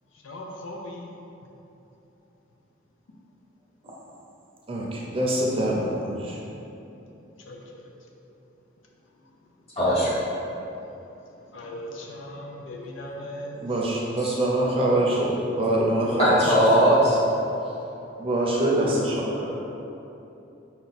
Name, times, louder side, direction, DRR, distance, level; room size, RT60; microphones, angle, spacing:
voice 1, 0.2-1.1 7.5-7.9 11.5-13.6 17.5-17.6, left 1 dB, 85° left, 0 dB, 0.5 m, -38 dB
voice 2, 4.7-6.4 13.5-16.5 18.2-19.5, right 1 dB, 30° right, -4 dB, 0.5 m, -24 dB
voice 3, 9.8-10.1 16.2-17.2, equal, 30° left, -8 dB, 1.2 m, -19 dB
5.3 x 2.3 x 4.0 m, 3.0 s
head